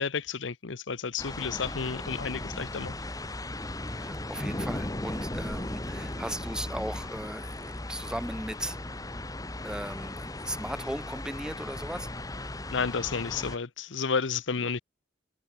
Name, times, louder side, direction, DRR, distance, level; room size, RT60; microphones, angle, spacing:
voice 1, 0.0-2.9 12.7-14.8, left 5 dB, 85° left, 0.9 m, -31 dB
sound 1, 1.2-13.6, left 1 dB, 20° left, 1.5 m, -37 dB
voice 2, 3.9-8.8 9.6-12.1 14.6-14.7, right 1 dB, 5° right, 1.2 m, -37 dB
head